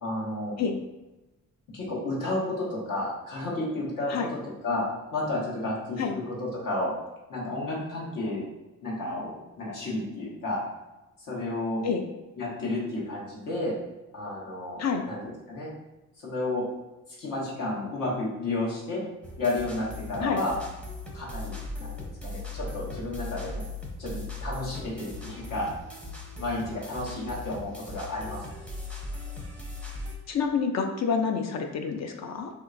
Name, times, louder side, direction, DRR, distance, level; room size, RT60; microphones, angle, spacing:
voice 1, 0.0-0.5 1.7-4.8 5.1-6.9 7.3-8.5 8.8-10.6 11.3-11.8 12.4-13.7 14.1-15.7 16.2-16.7 17.2-19.0 19.4-20.6 21.1-23.6 24.0-25.7 26.4-28.4, left 2 dB, 65° left, -5 dB, 1.3 m, -32 dB
sound 1, 19.2-30.1, left 2 dB, 5° left, 0.6 m, -38 dB
voice 2, 30.3-32.5, left 6 dB, 50° left, 5 dB, 0.4 m, -28 dB
3.3 x 2.8 x 2.5 m, 1.0 s
cardioid pair, 90°, 34 cm